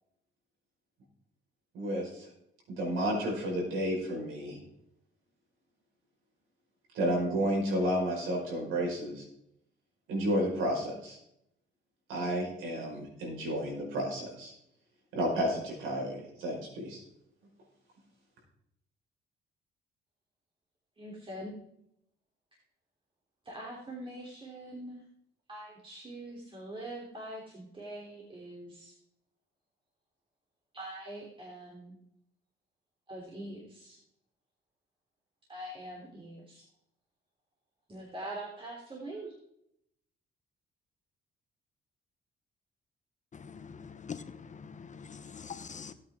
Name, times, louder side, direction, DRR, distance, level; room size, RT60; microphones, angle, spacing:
voice 1, 1.7-2.3 2.7-4.6 6.9-9.2 10.1-11.2 12.1-14.5 15.1-17.0, equal, 90° right, -1 dB, 5.1 m, -31 dB
voice 2, 21.0-21.5 23.4-25.0 25.5-28.9 30.7-32.0 33.1-34.0 35.5-36.6 37.9-39.3, right 1 dB, 25° right, -3 dB, 3.3 m, -43 dB
voice 3, 43.4-44.2 44.6-45.9, left 6 dB, 40° left, 10 dB, 0.9 m, -44 dB
17.5 x 8.5 x 3.7 m, 0.76 s
cardioid pair, 90°, 20 cm